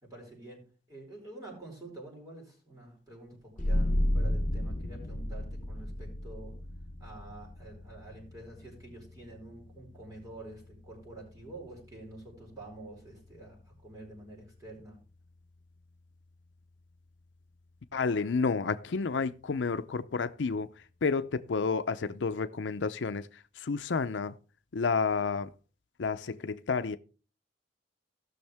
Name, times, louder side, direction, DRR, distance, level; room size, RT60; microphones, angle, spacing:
voice 1, 0.0-0.6 0.9-6.6 7.0-15.0, right 2 dB, 20° right, 5.0 m, -48 dB
sound 1, 3.6-14.8, left 1 dB, 45° left, 0.9 m, -35 dB
voice 2, 17.9-20.7 21.0-24.4 24.7-25.5 26.0-27.0, left 4 dB, 80° left, 0.5 m, -30 dB
17.0 x 6.4 x 3.4 m
head